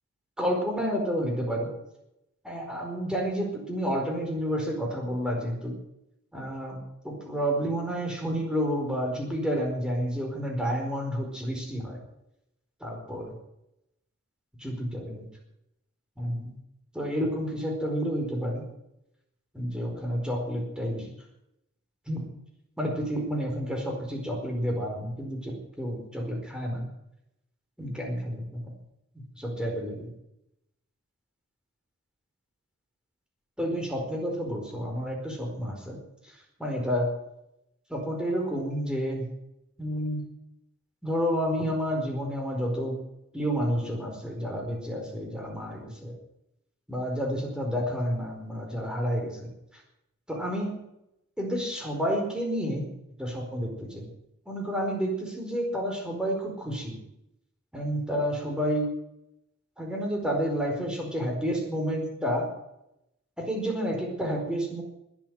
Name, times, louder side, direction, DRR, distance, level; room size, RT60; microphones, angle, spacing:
voice 1, 0.4-1.7 2.4-5.8 6.3-6.8 7.0-12.0 12.8-13.3 14.6-15.3 16.2-16.6 16.9-18.7 19.5-21.1 22.1-22.3 22.8-26.9 27.8-28.7 29.1-30.1 33.6-36.0 36.2-37.1 37.9-39.2 39.8-40.3 41.0-43.0 43.3-46.1 46.9-49.8 50.3-50.8 51.4-52.9 53.2-54.1 54.5-57.0 57.7-58.9 59.8-62.5 63.4-64.8, equal, 5° right, 0 dB, 4.6 m, -30 dB
20.5 x 8.6 x 7.8 m, 0.84 s
head